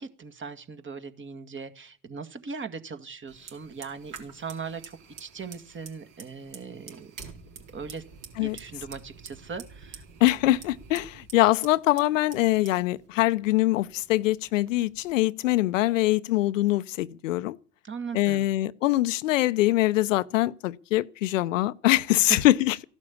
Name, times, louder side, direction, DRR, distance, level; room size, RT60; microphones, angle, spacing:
voice 1, 0.0-7.1 7.7-8.0 8.4-10.0 17.8-18.5, right 5 dB, 30° right, 2.1 m, -39 dB
Fire, 3.3-15.1, right 5 dB, 55° right, 4.2 m, -48 dB
voice 2, 10.2-17.6 18.1-22.8, left 16 dB, 85° left, 0.7 m, -23 dB
15.0 x 11.5 x 7.3 m
hypercardioid pair, 75°, 38 cm